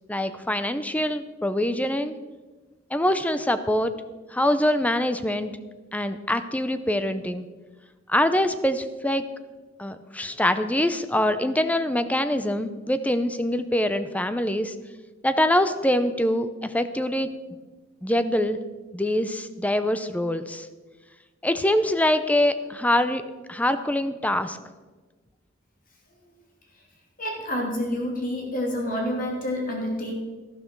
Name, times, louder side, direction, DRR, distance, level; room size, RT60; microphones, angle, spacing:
voice 1, 0.1-2.2 2.9-3.9 4.3-5.5 5.9-7.5 8.1-9.2 9.8-14.7 15.2-17.3 18.0-18.6 18.9-20.7 21.4-23.2 23.5-24.6, left 1 dB, 10° left, 11 dB, 0.6 m, -24 dB
voice 2, 27.2-30.1, left 1 dB, 45° left, 0 dB, 2.8 m, -28 dB
12.5 x 12.0 x 4.6 m, 1.2 s
head